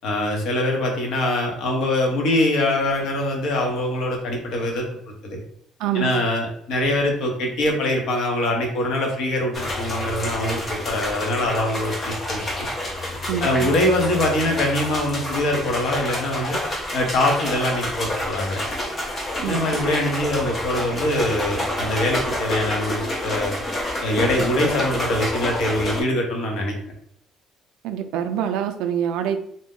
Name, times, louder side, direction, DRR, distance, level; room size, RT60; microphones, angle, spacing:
voice 1, 0.0-5.4 5.9-12.7 13.4-16.6 16.9-18.6 19.5-23.6 24.0-26.7, left 1 dB, 55° left, 1 dB, 0.8 m, -23 dB
voice 2, 5.8-6.1 13.3-13.7 19.4-19.6 27.8-29.4, right 9 dB, 80° right, 7 dB, 0.3 m, -25 dB
sound 1, 9.5-26.0, left 1 dB, 20° left, 0.6 m, -28 dB
2.6 x 2.1 x 3.6 m, 0.70 s
cardioid pair, 165°, 0 cm